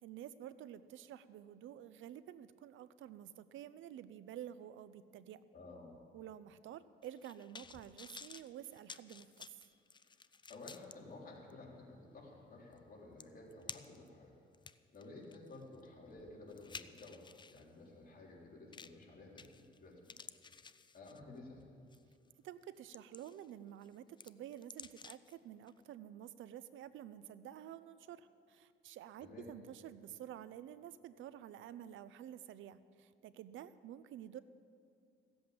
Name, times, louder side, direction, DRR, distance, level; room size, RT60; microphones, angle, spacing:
voice 1, 0.0-5.4 6.1-9.6 22.4-34.4, right 11 dB, 75° right, 15 dB, 0.6 m, -50 dB
voice 2, 5.5-6.0 10.5-14.3 14.9-20.1 20.9-21.6 29.2-29.5, left 2 dB, 45° left, -2 dB, 3.6 m, -53 dB
sound 1, 7.0-10.9 11.5-11.6 12.8-12.9 13.2-14.1 14.5-17.6 18.7-19.0 19.4-19.8 20.0-21.4 21.9-22.1 22.6-23.5 23.8-25.3 25.7-25.8, left 5 dB, 25° left, 0.5 m, -53 dB
16.0 x 7.8 x 8.7 m, 2.4 s
cardioid pair, 90°, 20 cm